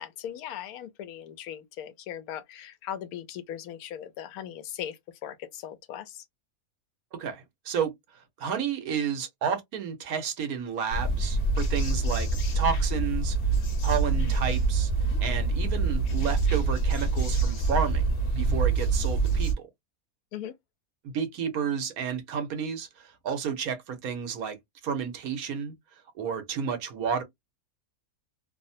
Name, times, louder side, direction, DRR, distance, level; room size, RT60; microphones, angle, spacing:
voice 1, 0.0-6.3 9.0-9.1 20.3-20.5, left 10 dB, 85° left, 1.1 m, -39 dB
voice 2, 7.2-7.9 8.4-12.3 12.5-13.4 13.8-14.9 15.2-19.7 21.0-24.6 24.8-25.7 26.2-27.2, right 7 dB, 80° right, 1.3 m, -31 dB
sound 1, 10.9-19.5, right 3 dB, 55° left, 1.1 m, -25 dB
3.0 x 2.0 x 2.6 m
omnidirectional pair, 1.5 m